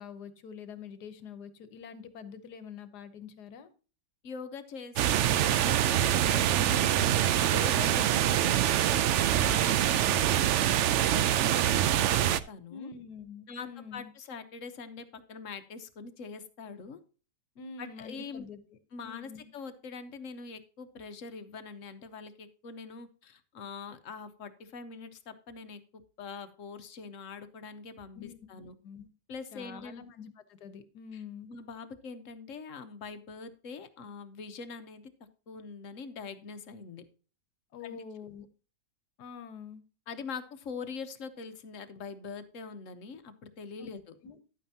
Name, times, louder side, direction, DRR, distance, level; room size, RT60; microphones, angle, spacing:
voice 1, 0.0-3.7 8.0-8.5 12.7-14.1 17.6-18.6 19.0-19.5 28.1-28.4 28.8-29.1 29.5-31.5 37.7-38.5 39.2-39.8 43.8-43.9 44.2-44.4, left 6 dB, 70° left, 12 dB, 1.5 m, -45 dB
voice 2, 4.2-12.9 13.5-17.0 17.8-18.5 18.9-28.7 29.3-30.0 31.1-31.2 31.5-35.1 35.5-37.0 37.8-38.0 40.1-44.1, left 5 dB, 55° left, 10 dB, 1.2 m, -44 dB
sound 1, 5.0-12.4, right 11 dB, 85° right, 0.6 m, -25 dB
11.5 x 9.0 x 2.8 m, 0.36 s
omnidirectional pair, 1.8 m